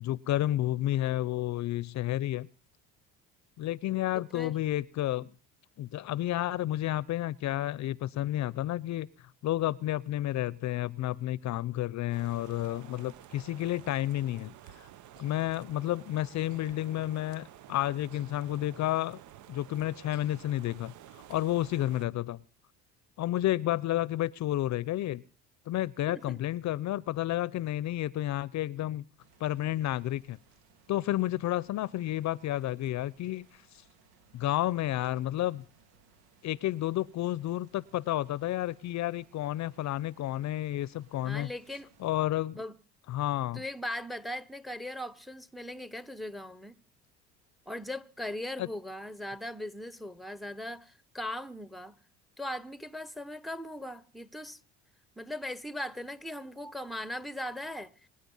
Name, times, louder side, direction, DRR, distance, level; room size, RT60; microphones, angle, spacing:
voice 1, 0.0-2.5 3.6-5.3 5.8-9.1 9.4-14.9 15.2-19.2 19.5-20.9 21.3-22.4 23.2-25.2 25.7-29.1 29.4-30.4 30.9-33.6 34.3-35.6 36.4-41.5 42.0-42.6 43.1-43.6 48.6-48.7, left 14 dB, 55° left, 0.7 m, -31 dB
voice 2, 4.1-4.5 26.1-26.4 41.2-41.9 42.5-42.8 43.5-46.8 47.7-52.0 52.4-54.6 55.2-57.9, left 1 dB, ahead, 1.0 m, -39 dB
sound 1, 12.1-22.1, right 12 dB, 60° right, 1.0 m, -52 dB
sound 2, 29.2-42.3, right 5 dB, 85° right, 2.7 m, -65 dB
26.0 x 10.0 x 5.5 m
supercardioid pair, 85°, 34 cm